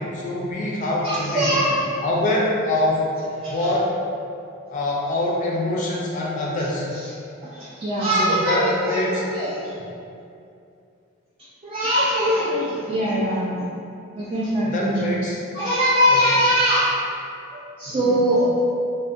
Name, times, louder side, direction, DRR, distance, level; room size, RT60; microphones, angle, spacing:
voice 1, 0.0-1.6 2.0-3.1 3.5-3.9 4.7-6.9 8.2-9.2 14.6-15.4 16.1-16.2, left 1 dB, 40° left, -3 dB, 0.4 m, -24 dB
voice 2, 1.0-1.9 3.4-3.7 6.6-7.1 7.4-9.8 11.6-13.7 14.1-15.1 15.5-17.0 17.5-18.5, equal, 30° right, -8 dB, 0.3 m, -22 dB
2.6 x 2.1 x 2.3 m, 2.5 s
head